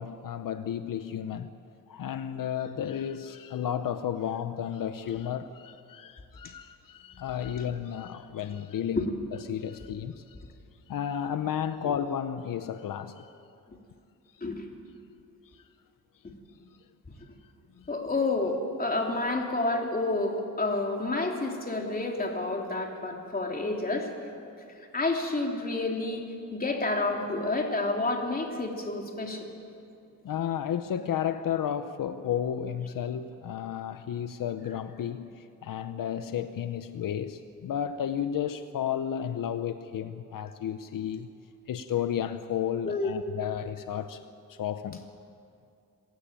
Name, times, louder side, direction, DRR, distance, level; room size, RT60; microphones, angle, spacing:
voice 1, 0.0-1.5 1.9-9.1 9.5-10.4 10.9-13.3 15.5-15.6 17.8-17.9 30.2-41.3 41.7-44.2 44.5-45.1, left 9 dB, 80° left, 0.8 m, -32 dB
voice 2, 17.9-24.1 24.9-29.5 42.8-43.1, left 2 dB, 25° left, 3.3 m, -29 dB
27.0 x 16.0 x 9.0 m
wide cardioid pair, 115°, 33 cm